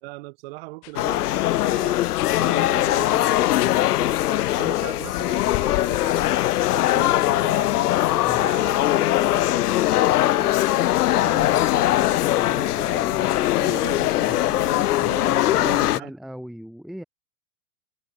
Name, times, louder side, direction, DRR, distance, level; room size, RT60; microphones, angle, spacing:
voice 1, 0.0-7.9 8.4-10.6 11.1-13.2 13.5-15.4 15.7-16.1, right 24 dB, 40° right, 2.1 m, -40 dB
sound 1, 0.8-0.9 1.2-1.5 2.1-2.3 3.6-3.8 5.0-7.0, left 28 dB, 40° left, 3.9 m, -34 dB
sound 2, 1.0-16.0, left 15 dB, 75° left, 0.9 m, -21 dB
voice 2, 12.4-13.5 13.8-13.9 14.3-14.4 15.0-17.0, equal, ahead, 0.9 m, -39 dB
supercardioid pair, 160°, 46 cm